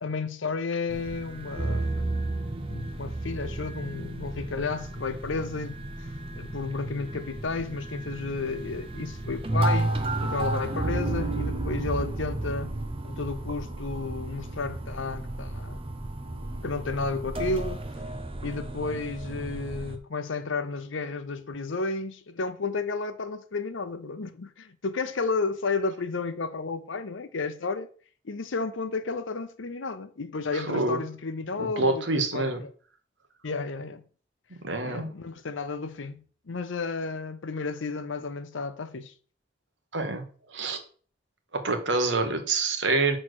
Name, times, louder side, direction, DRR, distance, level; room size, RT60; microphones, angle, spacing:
voice 1, 0.0-2.1 2.7-5.9 6.3-12.8 13.0-15.8 16.6-17.8 18.4-27.9 28.2-32.7 33.4-34.0 34.8-39.1, left 4 dB, 85° left, 0.7 m, -32 dB
sound 1, 0.9-20.0, right 2 dB, 30° right, 0.8 m, -32 dB
voice 2, 30.5-31.0 31.6-32.6 34.6-35.1 39.9-40.2 40.5-40.8 41.5-43.2, right 3 dB, 70° right, 1.3 m, -26 dB
6.4 x 4.4 x 6.1 m
head